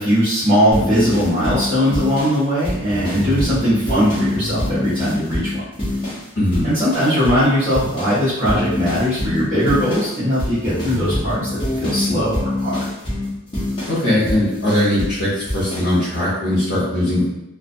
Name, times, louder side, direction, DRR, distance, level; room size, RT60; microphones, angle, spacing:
voice 1, 0.0-5.5 6.6-11.4 11.8-12.8, equal, 25° right, -15 dB, 0.8 m, -19 dB
sound 1, 0.7-6.3 6.5-7.5 7.7-15.2 15.5-15.9, left 1 dB, 20° left, 0.7 m, -25 dB
voice 2, 13.9-17.2, left 1 dB, 70° left, -10 dB, 0.9 m, -19 dB
2.4 x 2.3 x 2.5 m, 0.91 s
head